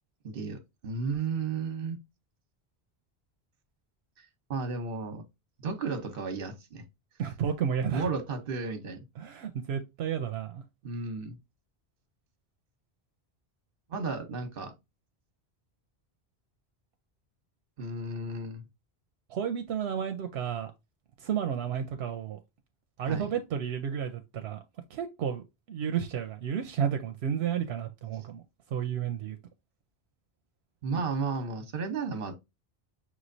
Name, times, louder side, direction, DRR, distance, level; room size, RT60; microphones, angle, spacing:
voice 1, 0.2-2.0 4.2-5.2 5.6-6.8 7.9-9.1 10.8-11.4 13.9-14.7 17.8-18.6 23.0-23.3 30.8-32.3, right 4 dB, 60° right, 1.1 m, -33 dB
voice 2, 7.2-8.1 9.2-10.6 19.3-20.7 21.2-22.4 23.0-24.6 24.9-28.4 28.7-29.4, right 8 dB, 85° right, 0.8 m, -32 dB
6.0 x 3.1 x 2.6 m
omnidirectional pair, 1.1 m